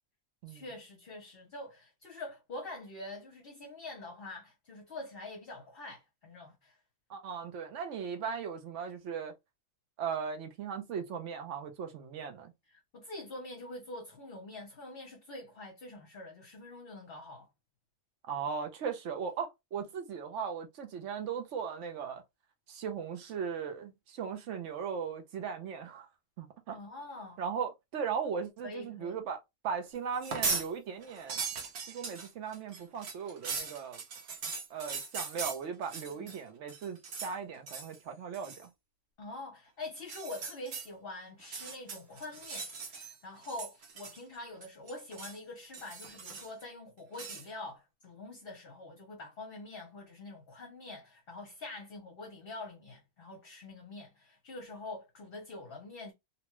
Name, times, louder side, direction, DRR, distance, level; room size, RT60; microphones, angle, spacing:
voice 1, 0.5-6.8 12.7-17.5 26.7-27.4 28.6-29.2 36.0-36.4 39.2-56.1, left 2 dB, 50° left, 0.9 m, -45 dB
voice 2, 7.1-9.3 10.0-12.5 18.2-22.2 22.7-26.1 26.4-26.8 27.4-31.4 31.9-34.0 34.7-38.7, right 6 dB, 65° right, 0.9 m, -38 dB
sound 1, 30.1-30.7 31.0-36.4 36.7-37.3 37.7-38.0 38.3-38.6 40.0-40.9 41.4-43.1 43.4-44.4 44.6-45.4 45.7-46.6 47.1-47.5, right 5 dB, 85° right, 1.3 m, -39 dB
2.9 x 2.2 x 3.0 m
omnidirectional pair, 1.5 m